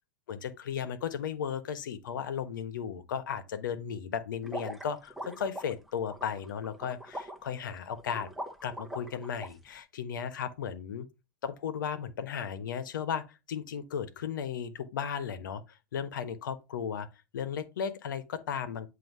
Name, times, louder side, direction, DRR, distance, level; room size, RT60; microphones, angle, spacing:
voice 1, 0.3-8.3 8.6-11.1 11.4-17.1 17.3-18.9, left 7 dB, 75° left, 1.1 m, -35 dB
sound 1, 4.4-9.5, right 1 dB, ahead, 1.0 m, -42 dB
7.8 x 2.8 x 5.4 m
hypercardioid pair, 120°, 10 cm